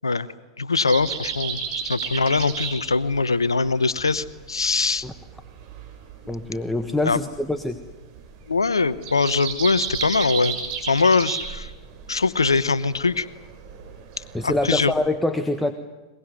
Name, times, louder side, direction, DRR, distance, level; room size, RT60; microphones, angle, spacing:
voice 1, 0.6-1.6 1.9-5.0 7.0-7.2 8.5-10.6 10.8-11.7 12.1-13.3 14.4-14.9, left 4 dB, 90° left, 16 dB, 0.8 m, -22 dB
sound 1, 0.9-15.1, right 7 dB, 45° right, 6.6 m, -34 dB
voice 2, 6.3-7.8 14.3-15.7, left 2 dB, 5° left, 7 dB, 1.4 m, -25 dB
22.5 x 22.5 x 9.7 m, 1.1 s
hypercardioid pair, 95°, 2 cm